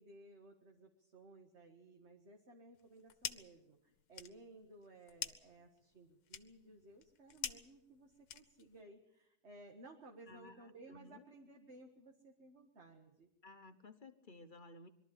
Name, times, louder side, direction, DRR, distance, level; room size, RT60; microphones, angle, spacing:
voice 1, 0.0-13.3, right 2 dB, 45° right, 2 dB, 2.0 m, -58 dB
sound 1, 2.8-3.6 3.9-8.8, left 9 dB, 80° left, 1.5 m, -47 dB
voice 2, 10.3-11.3 13.4-14.9, left 2 dB, 35° left, 9 dB, 1.1 m, -56 dB
22.5 x 13.0 x 10.0 m, 0.85 s
omnidirectional pair, 1.6 m